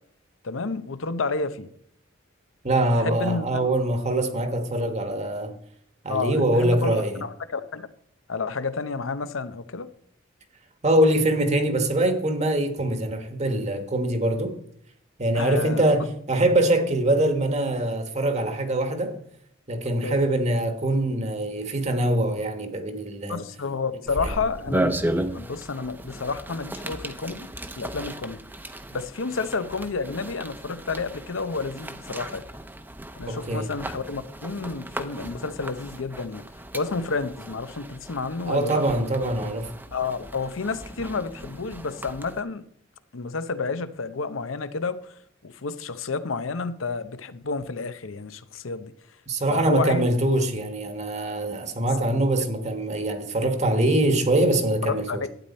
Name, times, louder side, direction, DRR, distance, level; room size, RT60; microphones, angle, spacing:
voice 1, 0.4-1.7 2.9-3.6 6.1-7.9 8.3-9.9 15.3-15.8 20.0-20.2 23.3-24.9 25.3-27.5 27.8-28.4 28.9-32.4 33.2-36.4 36.7-38.8 39.9-42.6 43.1-45.0 45.4-48.9 49.5-50.0 53.4-53.5 54.8-55.3, left 4 dB, 85° left, 0.8 m, -30 dB
voice 2, 2.6-5.6 6.0-7.2 10.8-14.5 15.2-19.2 19.7-23.4 24.2-24.4 33.3-33.7 38.5-39.7 49.3-55.2, right 1 dB, 35° right, 1.4 m, -23 dB
sound 1, 24.1-42.4, right 1 dB, 10° right, 0.7 m, -35 dB
12.0 x 9.2 x 4.3 m
head